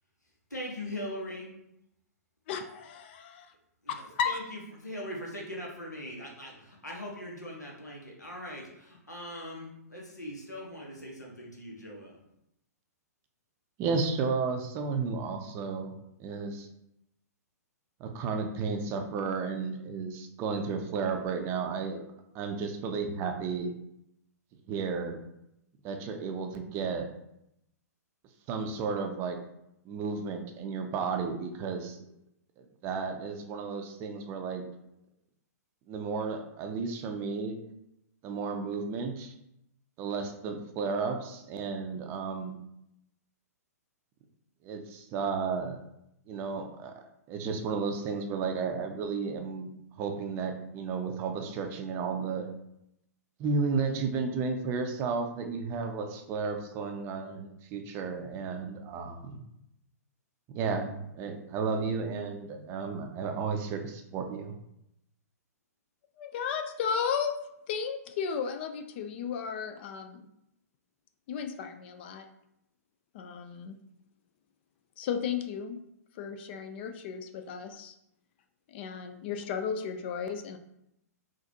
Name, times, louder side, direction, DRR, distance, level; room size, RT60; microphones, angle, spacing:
voice 1, 0.5-1.5 3.8-12.2, left 1 dB, 90° left, -1 dB, 1.0 m, -41 dB
voice 2, 2.5-3.5 3.9-4.4 66.2-67.4 67.7-70.3 71.3-72.2 73.1-73.8 75.0-75.8 76.2-77.9 78.7-80.6, left 7 dB, 40° left, 7 dB, 0.3 m, -34 dB
voice 3, 13.8-15.9 16.2-16.7 18.0-22.0 22.3-23.7 24.7-25.2 25.8-27.1 28.5-29.4 29.9-32.0 32.6-34.6 35.9-37.6 38.2-39.3 40.0-42.6 44.6-45.8 46.3-46.9 47.3-49.7 50.0-52.5 53.4-59.4 60.5-64.6, right 5 dB, 25° right, 4 dB, 0.5 m, -33 dB
3.9 x 2.5 x 2.8 m, 0.81 s
figure-of-eight pair, 115°, 9 cm